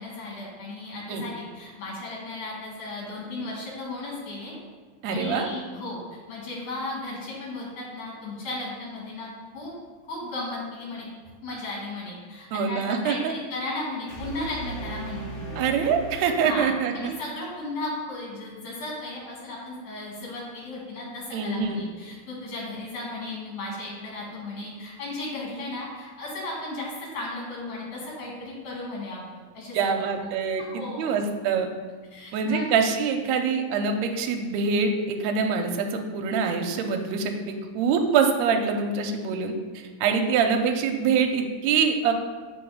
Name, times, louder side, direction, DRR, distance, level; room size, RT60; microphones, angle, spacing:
voice 1, 0.0-4.5 5.1-6.0 6.3-9.3 9.5-9.7 10.1-11.1 11.4-15.6 16.4-16.7 17.0-30.3 30.6-31.1 32.1-32.7, left 2 dB, 75° left, -4 dB, 3.6 m, -35 dB
voice 2, 5.0-5.5 12.5-13.2 15.6-16.9 21.3-21.8 29.7-31.7 32.3-39.5 40.0-42.1, right 5 dB, 75° right, 4 dB, 1.8 m, -24 dB
sound 1, 14.1-17.1, right 2 dB, 60° left, 3.6 m, -38 dB
6.9 x 3.8 x 6.4 m, 1.5 s
omnidirectional pair, 3.6 m